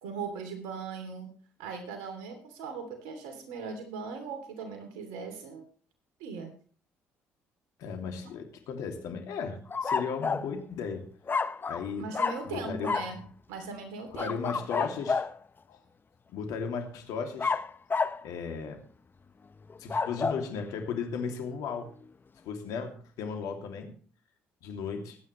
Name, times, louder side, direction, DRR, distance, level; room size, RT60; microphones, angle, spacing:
voice 1, 0.0-5.6 6.2-6.5 12.0-13.2 13.5-14.9, right 5 dB, 80° right, 6 dB, 3.1 m, -39 dB
voice 2, 7.8-11.0 11.7-12.1 12.4-13.2 14.1-15.2 15.7-15.8 16.3-17.6 18.2-18.8 19.8-21.9 22.4-23.9 24.6-25.2, left 6 dB, 70° left, 4 dB, 2.7 m, -35 dB
sound 1, 9.7-10.5 11.3-11.9 12.1-12.5 12.8-13.1 14.2-15.4 17.4-18.2 19.7-20.4, left 5 dB, 30° left, 0.8 m, -30 dB
21.5 x 9.5 x 3.2 m, 0.43 s
hypercardioid pair, 55°, 6 cm